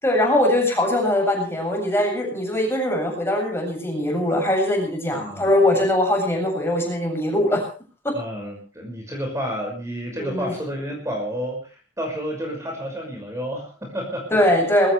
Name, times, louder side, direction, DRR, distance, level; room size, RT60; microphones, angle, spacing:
voice 1, 0.0-7.6 8.0-8.1 10.2-10.5 14.3-14.9, left 1 dB, 15° left, 2 dB, 7.6 m, -21 dB
voice 2, 5.1-5.5 8.1-14.3, equal, 15° right, 1 dB, 5.9 m, -30 dB
21.5 x 18.5 x 3.4 m, 0.38 s
head